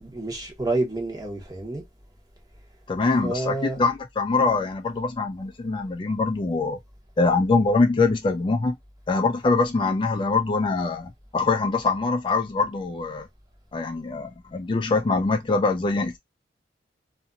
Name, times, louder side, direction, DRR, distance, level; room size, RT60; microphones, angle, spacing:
voice 1, 0.0-1.8 3.2-3.8, right 2 dB, 20° right, 0.9 m, -29 dB
voice 2, 2.9-6.8 7.2-8.8 9.1-13.3 13.7-16.2, left 3 dB, 30° left, 0.3 m, -23 dB
2.8 x 2.5 x 2.4 m
head